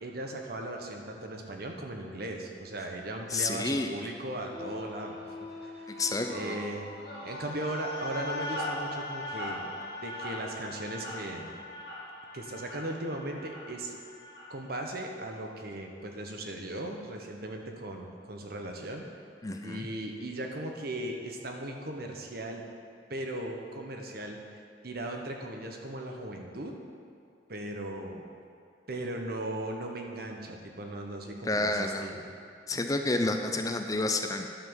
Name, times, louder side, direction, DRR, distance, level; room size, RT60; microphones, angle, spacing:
voice 1, 0.0-5.9 6.3-6.9 7.2-9.7 10.0-11.5 12.3-13.9 14.5-19.0 19.6-22.6 23.1-24.4 24.8-26.8 27.5-28.2 28.9-32.2, right 1 dB, 55° right, 2 dB, 1.2 m, -37 dB
voice 2, 3.3-3.9 5.9-6.6 19.4-19.9 31.5-32.1 32.7-34.6, left 2 dB, 20° left, 5 dB, 0.5 m, -30 dB
sound 1, 4.5-14.9, left 2 dB, 60° left, 1.7 m, -40 dB
10.5 x 6.0 x 7.1 m, 2.5 s
head